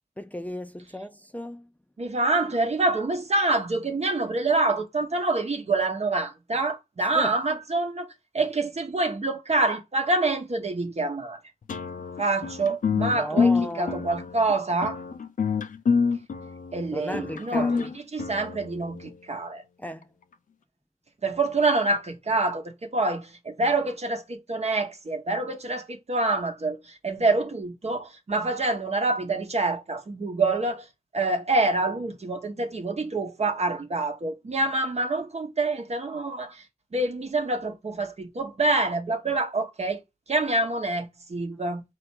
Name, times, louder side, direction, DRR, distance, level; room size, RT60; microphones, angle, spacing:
voice 1, 0.2-1.7 7.1-7.3 13.1-14.2 16.9-17.9 19.8-20.1, left 1 dB, 10° left, 0.4 m, -35 dB
voice 2, 2.0-8.1 8.3-11.4 12.2-15.0 16.7-19.6 21.2-30.9 31.1-36.6 36.9-40.0 40.3-41.8, right 2 dB, 55° right, 0.9 m, -26 dB
sound 1, 11.7-19.1, left 5 dB, 80° left, 0.5 m, -27 dB
4.4 x 2.5 x 4.3 m
wide cardioid pair, 65°, 13 cm